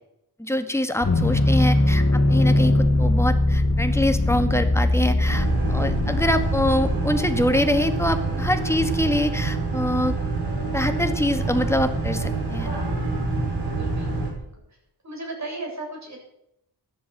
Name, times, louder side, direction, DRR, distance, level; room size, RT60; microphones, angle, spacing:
voice 1, 0.4-10.1 10.7-12.7, left 1 dB, 5° left, 7 dB, 1.8 m, -25 dB
sound 1, 1.0-8.2, left 1 dB, 40° left, 1.9 m, -21 dB
Boat Water vehicle, 5.3-14.3, right 3 dB, 90° right, 5.7 m, -26 dB
voice 2, 13.6-14.8 15.0-16.2, right 2 dB, 45° right, 0 dB, 7.8 m, -36 dB
14.0 x 10.5 x 8.0 m, 0.79 s
wide cardioid pair, 90°, 39 cm